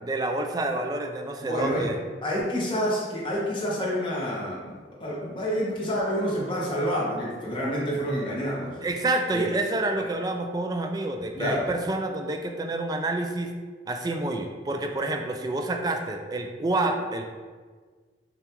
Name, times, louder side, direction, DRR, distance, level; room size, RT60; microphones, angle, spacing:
voice 1, 0.0-2.0 8.8-13.6 13.9-17.3, right 2 dB, 20° right, 4 dB, 0.3 m, -28 dB
voice 2, 1.4-1.9 2.2-4.7 5.0-8.8 9.3-9.4 11.3-11.7, equal, 30° left, -5 dB, 1.0 m, -28 dB
6.7 x 2.4 x 3.0 m, 1.5 s
head